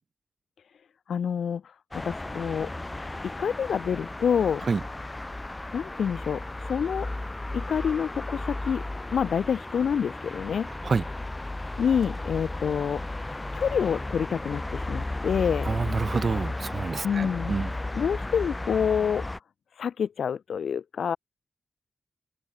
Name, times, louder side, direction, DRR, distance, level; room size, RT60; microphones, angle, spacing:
voice 1, 1.1-1.6 1.9-2.7 3.4-4.6 5.7-7.1 7.5-8.8 9.1-10.7 11.8-13.0 13.3-15.7 17.0-17.5 17.9-19.2 19.8-21.2, left 7 dB, 80° left, 0.7 m, -27 dB
sound 1, 1.9-19.4, left 2 dB, 20° left, 1.4 m, -34 dB
voice 2, 10.7-11.0 15.6-17.7, right 4 dB, 50° right, 0.4 m, -28 dB
open air
cardioid pair, 60°, 0 cm